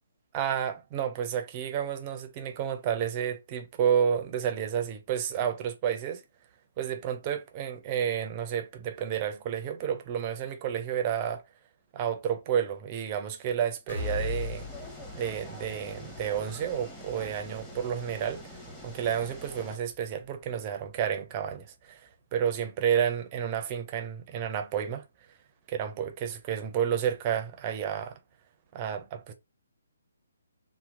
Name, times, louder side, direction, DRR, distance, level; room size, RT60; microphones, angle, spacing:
voice 1, 0.3-6.2 6.8-11.4 11.9-14.7 15.2-18.4 18.8-22.0 22.3-25.0 25.7-28.2 28.7-29.3, right 9 dB, 30° right, 0.5 m, -30 dB
sound 1, 13.9-21.7 22.1-22.2 22.6-22.7, left 4 dB, 60° left, 1.6 m, -42 dB
sound 2, 14.0-19.8, equal, 5° left, 1.0 m, -45 dB
2.9 x 2.1 x 3.6 m
hypercardioid pair, 145°, 0 cm